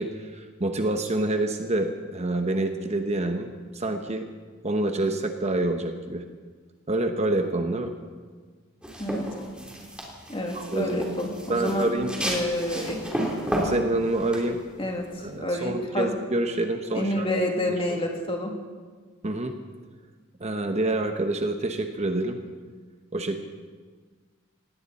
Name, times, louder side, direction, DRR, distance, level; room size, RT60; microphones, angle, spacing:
voice 1, 0.0-4.3 4.6-6.2 6.9-7.9 10.5-11.0 11.5-12.1 13.6-14.6 15.2-17.3 19.2-19.5 20.4-22.4 23.1-23.4, right 2 dB, 30° right, 5 dB, 1.0 m, -27 dB
sound 1, 8.8-15.3, equal, 5° right, 3.2 m, -32 dB
voice 2, 10.3-11.9 12.2-13.0 14.8-15.1 15.4-16.1 16.9-18.5, left 1 dB, 25° left, 0 dB, 2.5 m, -28 dB
18.5 x 18.0 x 4.2 m, 1.5 s
head